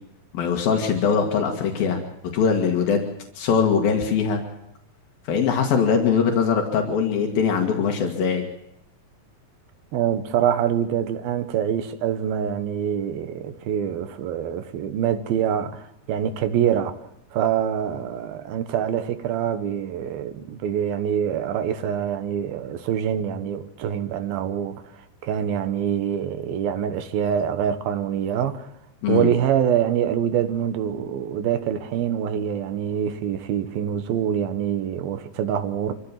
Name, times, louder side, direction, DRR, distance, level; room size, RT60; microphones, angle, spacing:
voice 1, 0.3-2.0 2.3-3.0 3.4-4.4 5.3-8.5 29.0-29.3, left 6 dB, 80° left, 3.6 m, -21 dB
voice 2, 9.9-17.0 17.3-24.8 25.2-28.7 29.1-35.9, right 9 dB, 85° right, 3.1 m, -25 dB
25.5 x 15.5 x 7.5 m
omnidirectional pair, 4.1 m